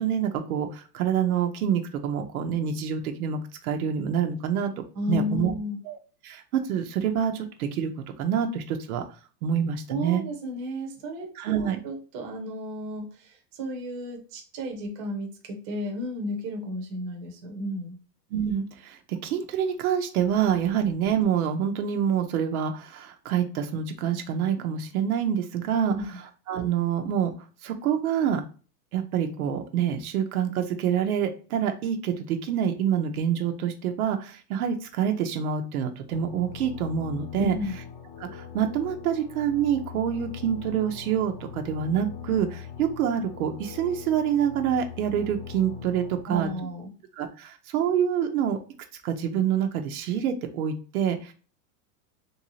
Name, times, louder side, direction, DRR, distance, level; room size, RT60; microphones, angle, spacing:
voice 1, 0.0-4.7 5.1-5.5 5.9-6.0 6.2-7.9 8.2-9.0 9.4-10.2 11.4-11.8 18.3-25.9 26.5-27.3 27.6-28.4 28.9-37.6 38.2-46.5 47.2-48.6 49.0-51.3, right 8 dB, 60° right, 5 dB, 0.7 m, -26 dB
voice 2, 4.9-5.8 9.9-18.0 25.9-26.2 37.4-37.8 46.3-46.9, left 1 dB, 25° right, 1 dB, 0.8 m, -33 dB
sound 1, 36.1-46.2, left 8 dB, 40° left, 0.6 m, -41 dB
3.2 x 2.7 x 3.0 m, 0.37 s
supercardioid pair, 165°, 50 cm